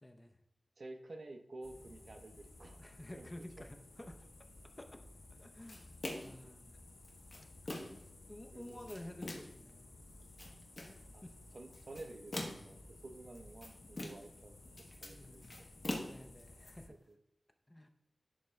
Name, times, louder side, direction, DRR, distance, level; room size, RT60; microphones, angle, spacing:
voice 1, 0.0-0.3 2.8-4.3 4.8-5.0 5.4-5.9 6.2-6.8 8.3-9.9 11.2-11.3 15.1-15.5 16.0-17.0 17.7-17.9, left 1 dB, 20° left, 5 dB, 0.7 m, -51 dB
voice 2, 0.8-2.8 3.1-3.6 8.5-8.8 11.1-11.3 11.5-14.6 15.0-15.4 16.9-17.2, right 2 dB, 60° right, 6 dB, 0.7 m, -51 dB
sound 1, 1.6-16.9, left 2 dB, 60° left, 0.6 m, -57 dB
sound 2, 5.7-6.4 7.0-8.1 8.6-9.6 10.2-11.0 11.7-12.8 13.4-14.4 14.7-16.7, left 1 dB, 45° left, 1.1 m, -44 dB
11.0 x 3.6 x 3.2 m, 0.83 s
wide cardioid pair, 85°, 0 cm